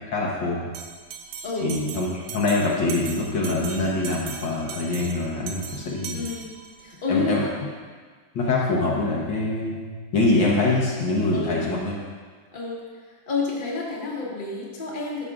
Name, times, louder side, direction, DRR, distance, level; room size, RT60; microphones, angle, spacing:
voice 1, 0.1-0.7 1.6-6.2 7.1-7.4 8.4-9.9 10.1-12.0, left 2 dB, 65° left, -4 dB, 1.6 m, -24 dB
Bell, 0.7-7.0, right 6 dB, 70° right, 1.0 m, -39 dB
voice 2, 1.4-1.8 6.1-6.5 6.8-7.5 11.3-11.7 12.5-12.8 13.3-15.2, left 3 dB, 25° left, -5 dB, 1.4 m, -29 dB
12.0 x 6.7 x 2.4 m, 1.5 s
omnidirectional pair, 2.3 m